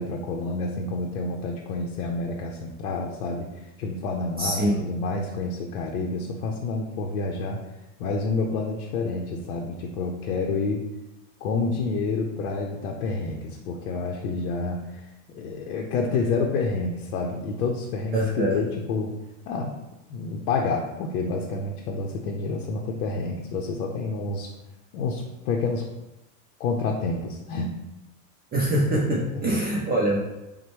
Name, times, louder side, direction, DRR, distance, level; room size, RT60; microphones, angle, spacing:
voice 1, 0.0-7.6 8.0-10.8 11.4-19.1 19.5-19.7 20.1-24.5 24.9-25.9 26.6-27.8 29.3-29.6, left 3 dB, 90° left, 0 dB, 0.6 m, -29 dB
voice 2, 4.4-4.8 18.1-18.6 28.5-30.2, right 1 dB, 25° right, -3 dB, 0.4 m, -24 dB
6.0 x 2.1 x 3.0 m, 0.99 s
supercardioid pair, 125°, 42 cm